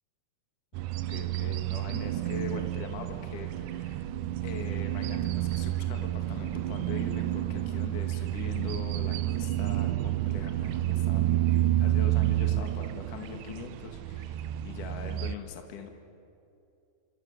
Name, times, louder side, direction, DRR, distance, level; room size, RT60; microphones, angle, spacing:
sound 1, 0.7-15.3, right 14 dB, 90° right, 1.7 m, -30 dB
voice 1, 1.1-4.1 4.4-15.9, left 6 dB, 60° left, 4 dB, 3.1 m, -42 dB
28.0 x 27.0 x 6.7 m, 2.6 s
omnidirectional pair, 4.6 m